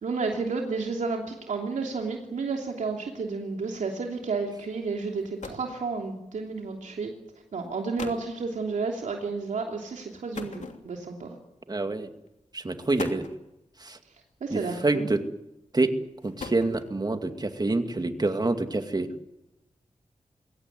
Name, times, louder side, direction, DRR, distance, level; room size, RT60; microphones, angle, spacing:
voice 1, 0.0-7.1 7.5-11.3 14.4-15.1, right 4 dB, 85° right, 1 dB, 3.1 m, -31 dB
sound 1, 5.2-5.8 6.8-7.0 7.6-7.7 8.0-8.3 10.3-11.2 12.1-12.3 12.8-13.5 14.7-15.2 16.0-17.1, left 4 dB, 75° left, 2.9 m, -40 dB
voice 2, 11.7-12.1 12.5-13.3 13.8-14.0 14.5-15.2 15.7-15.9 16.2-19.1, right 2 dB, 35° right, 7 dB, 2.3 m, -27 dB
22.5 x 17.5 x 9.7 m, 0.89 s
cardioid pair, 65°, 13 cm